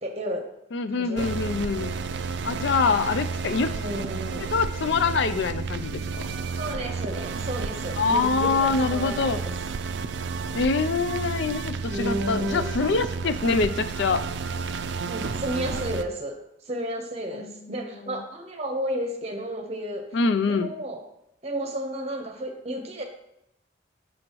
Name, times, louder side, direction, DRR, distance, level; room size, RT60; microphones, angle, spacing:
voice 1, 0.0-0.4 0.9-1.3 3.7-4.5 6.6-9.5 11.9-12.9 15.1-16.3 16.7-20.0 20.5-21.0 21.4-23.0, right 1 dB, 35° right, 3 dB, 0.9 m, -32 dB
voice 2, 0.7-1.9 2.4-3.7 4.5-6.3 8.0-9.4 10.5-14.2 17.3-18.2 20.1-20.7, left 4 dB, 70° left, 11 dB, 0.4 m, -25 dB
sound 1, 1.2-16.0, right 5 dB, 65° right, 0.4 m, -31 dB
7.6 x 6.3 x 3.0 m, 0.81 s
head